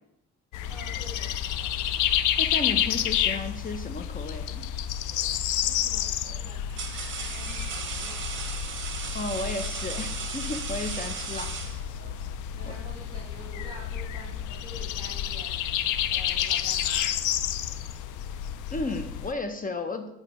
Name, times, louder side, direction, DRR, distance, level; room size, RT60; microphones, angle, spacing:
sound 1, 0.5-19.3, left 10 dB, 80° left, 0.4 m, -30 dB
voice 1, 0.7-1.7 5.6-8.5 12.5-17.1, equal, 15° right, -7 dB, 2.7 m, -47 dB
voice 2, 2.4-4.7 9.1-11.5 12.7-12.8 18.7-20.1, left 2 dB, 30° left, 7 dB, 0.6 m, -33 dB
sound 2, 5.1-5.4 6.2-12.2, right 6 dB, 40° right, 0.9 m, -37 dB
7.9 x 5.3 x 3.0 m, 0.82 s
cardioid pair, 90°, 30 cm